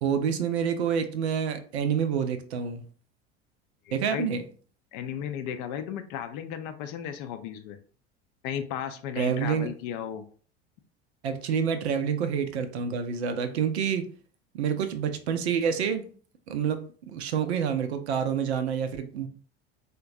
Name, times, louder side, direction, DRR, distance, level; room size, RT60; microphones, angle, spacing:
voice 1, 0.0-2.8 3.9-4.4 9.2-9.7 11.2-14.1 14.5-16.0 16.5-19.3, right 7 dB, 70° right, 0.5 m, -28 dB
voice 2, 3.9-4.3 4.9-7.8 8.4-10.2, left 9 dB, 45° left, 0.5 m, -35 dB
3.8 x 2.2 x 2.5 m
figure-of-eight pair, 70°, 34 cm